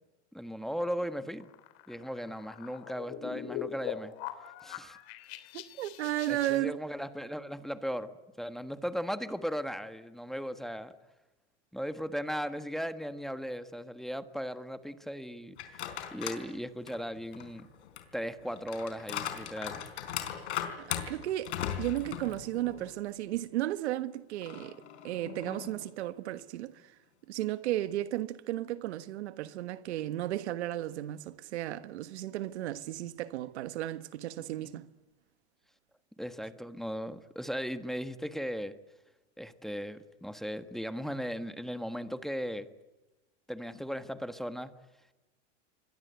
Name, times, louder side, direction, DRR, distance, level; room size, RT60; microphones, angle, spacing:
voice 1, 0.3-1.5 1.9-4.1 4.6-5.0 6.3-10.9 11.7-15.8 16.1-17.7 18.1-19.8 34.6-34.8 36.2-38.7 39.4-42.7 43.5-44.7, equal, ahead, 1.4 m, -37 dB
sound 1, 1.4-6.6, left 12 dB, 65° left, 3.3 m, -42 dB
voice 2, 5.5-6.7 20.8-24.8 25.0-26.8 27.3-34.9, right 14 dB, 85° right, 1.4 m, -34 dB
sound 2, 15.6-16.5 16.9-23.0 23.3-23.4 24.4-25.9, left 10 dB, 85° left, 4.5 m, -39 dB
27.5 x 22.5 x 8.2 m
supercardioid pair, 130°, 33 cm